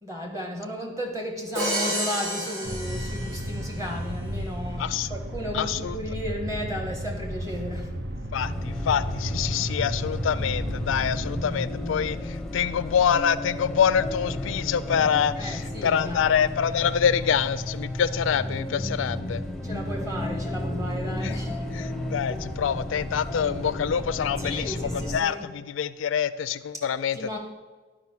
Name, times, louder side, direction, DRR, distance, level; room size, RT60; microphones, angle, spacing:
voice 1, 0.0-7.9 15.3-16.3 19.6-21.7 24.4-25.5 27.1-27.4, equal, 15° right, 1 dB, 1.3 m, -34 dB
Crash cymbal, 1.5-3.8, right 1 dB, 75° right, 2.5 m, -30 dB
sound 1, 2.6-11.4, equal, 60° right, 0.8 m, -33 dB
voice 2, 4.8-5.1 5.5-6.0 8.3-19.4 21.2-21.3 21.7-27.4, left 8 dB, 85° left, 15 dB, 0.4 m, -26 dB
sound 2, 8.4-25.2, left 1 dB, 5° left, 0.7 m, -33 dB
10.5 x 4.9 x 5.8 m, 1.3 s
head